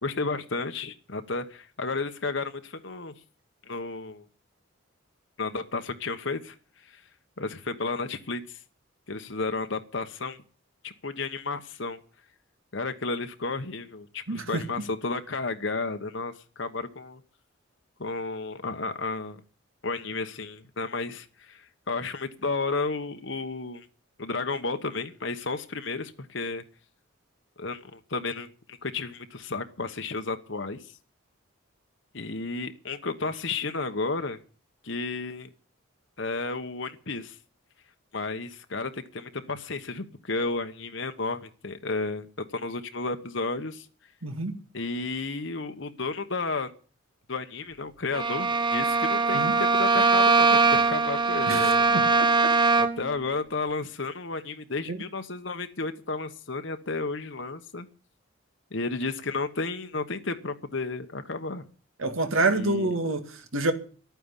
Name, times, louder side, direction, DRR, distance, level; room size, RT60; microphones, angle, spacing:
voice 1, 0.0-3.1 3.7-4.2 5.4-6.5 6.8-7.0 7.4-8.6 9.1-10.4 10.8-12.0 12.7-17.2 18.0-19.4 19.8-23.9 24.2-26.6 27.6-30.9 32.1-34.4 34.8-35.5 36.2-37.4 38.1-42.3 42.5-43.9 44.7-46.7 47.3-51.9 52.8-57.9 58.7-61.7 62.5-62.9, left 3 dB, 60° left, 1.2 m, -32 dB
voice 2, 14.3-14.6 44.2-44.6 49.3-49.5 51.5-52.3 54.9-55.0 62.0-63.7, right 2 dB, 75° right, 2.1 m, -27 dB
Bowed string instrument, 48.1-53.1, right 4 dB, 20° right, 1.0 m, -22 dB
12.0 x 9.3 x 10.0 m
head